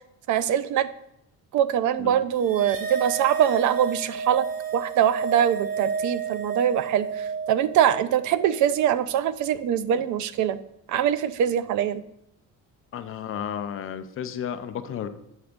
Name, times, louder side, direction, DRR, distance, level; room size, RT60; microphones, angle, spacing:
voice 1, 0.3-0.9 1.5-4.5 4.7-10.6 10.9-12.0, right 10 dB, 60° right, 14 dB, 0.5 m, -23 dB
sound 1, 2.4-9.0, right 5 dB, 90° right, 1.6 m, -32 dB
voice 2, 12.9-15.1, left 8 dB, 40° left, 9 dB, 0.5 m, -33 dB
8.1 x 3.4 x 6.5 m, 0.79 s
cardioid pair, 180°, 34 cm